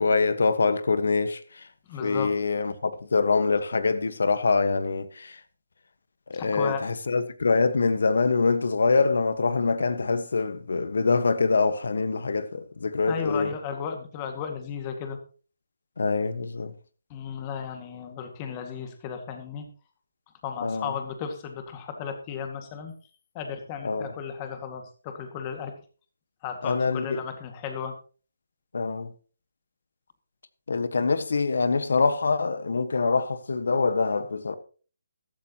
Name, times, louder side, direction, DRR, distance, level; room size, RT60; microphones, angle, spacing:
voice 1, 0.0-1.6 2.0-5.4 6.3-13.5 16.0-16.7 20.6-20.9 23.8-24.1 26.6-27.3 28.7-29.1 30.7-34.5, left 4 dB, 70° left, 1.4 m, -24 dB
voice 2, 1.9-2.3 6.3-6.8 13.1-15.2 17.1-19.7 20.4-22.9 23.3-25.7 26.4-27.9, left 7 dB, 25° left, 2.0 m, -34 dB
14.5 x 12.5 x 3.0 m
hypercardioid pair, 160°, 0 cm